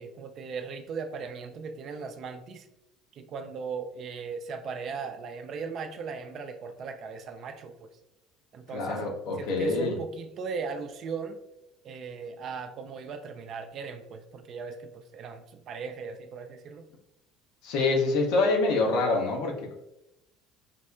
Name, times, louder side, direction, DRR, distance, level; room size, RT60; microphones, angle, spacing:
voice 1, 0.0-2.7 3.1-7.7 8.5-9.0 9.4-11.4 11.8-16.9, right 5 dB, 45° right, 6 dB, 0.4 m, -38 dB
voice 2, 8.7-10.0 17.6-19.7, left 3 dB, 60° left, 1 dB, 0.6 m, -26 dB
5.0 x 2.1 x 2.3 m, 0.90 s
figure-of-eight pair, 60°, 0 cm